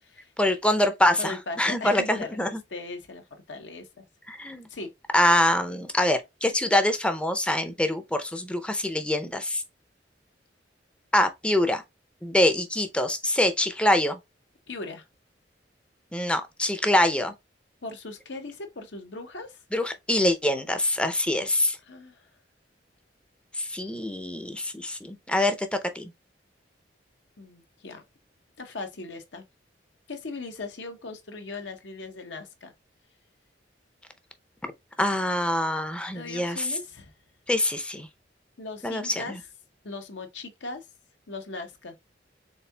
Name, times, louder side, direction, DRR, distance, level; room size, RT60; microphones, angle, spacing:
voice 1, 0.4-2.6 4.3-4.7 5.1-9.6 11.1-11.8 12.2-14.2 16.1-17.3 19.7-21.8 23.6-26.1 34.6-34.7 35.0-36.8 37.5-38.1 38.8-39.4, left 1 dB, 5° left, 0.5 m, -25 dB
voice 2, 1.2-2.3 2.7-4.0 4.7-4.9 14.7-15.0 17.8-19.6 21.8-22.3 27.4-28.0 28.6-29.4 30.1-32.7 36.1-37.1 38.6-39.3 39.8-40.8 41.3-42.0, left 3 dB, 75° left, 0.9 m, -38 dB
4.2 x 3.6 x 2.2 m
head